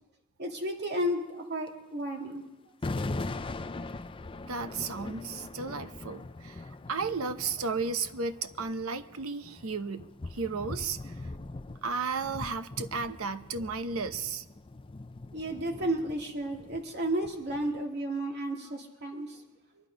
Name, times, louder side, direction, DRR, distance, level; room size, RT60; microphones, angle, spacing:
voice 1, 0.4-2.4 15.3-19.4, right 1 dB, 50° right, 2 dB, 2.2 m, -32 dB
sound 1, 1.7-1.8 2.8-17.8, left 2 dB, 25° left, 0.4 m, -41 dB
voice 2, 4.5-11.1 11.8-14.4, right 4 dB, 80° right, 11 dB, 0.8 m, -34 dB
24.0 x 11.0 x 5.1 m, 1.0 s
head